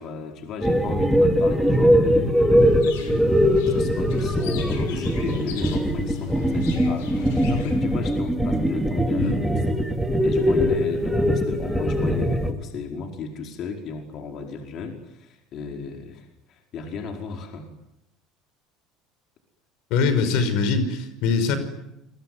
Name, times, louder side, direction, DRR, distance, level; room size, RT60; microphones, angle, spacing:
voice 1, 0.0-9.6 10.2-17.7, left 5 dB, 55° left, 3 dB, 4.9 m, -35 dB
sound 1, 0.6-12.5, equal, 5° right, 3.7 m, -21 dB
sound 2, 2.6-7.8, left 10 dB, 85° left, 6.2 m, -36 dB
voice 2, 19.9-21.6, left 4 dB, 70° left, 10 dB, 5.7 m, -22 dB
27.5 x 22.5 x 9.6 m, 0.86 s
supercardioid pair, 95°, 0 cm